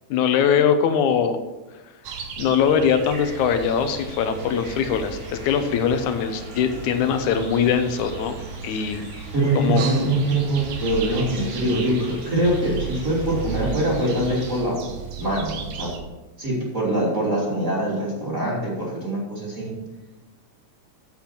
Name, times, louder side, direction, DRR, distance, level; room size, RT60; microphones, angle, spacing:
voice 1, 0.1-1.4 2.4-8.4 8.6-9.1 9.6-9.8, left 7 dB, 80° left, 8 dB, 2.4 m, -21 dB
sound 1, 2.0-16.0, right 5 dB, 65° right, 2.1 m, -36 dB
sound 2, 3.0-14.6, right 2 dB, 90° right, 3.7 m, -40 dB
voice 2, 9.3-14.8 15.2-15.9 16.4-19.7, right 1 dB, 25° right, -5 dB, 3.3 m, -23 dB
8.9 x 7.9 x 5.8 m, 1.1 s
omnidirectional pair, 3.4 m